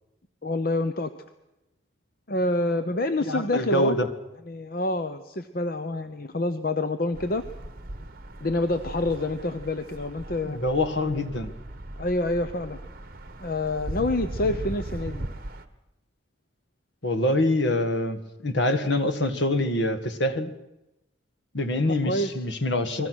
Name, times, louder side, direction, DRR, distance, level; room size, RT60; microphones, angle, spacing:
voice 1, 0.4-1.1 2.3-4.0 4.5-7.4 8.4-10.6 12.0-12.8 13.4-15.2 21.9-22.4, left 2 dB, 50° left, 9 dB, 0.9 m, -27 dB
voice 2, 3.2-4.1 10.4-11.5 17.0-20.5 21.5-23.1, left 1 dB, 65° left, 9 dB, 1.9 m, -25 dB
sound 1, 7.1-15.6, right 1 dB, 45° right, 1.4 m, -38 dB
29.5 x 21.0 x 6.3 m, 0.94 s
head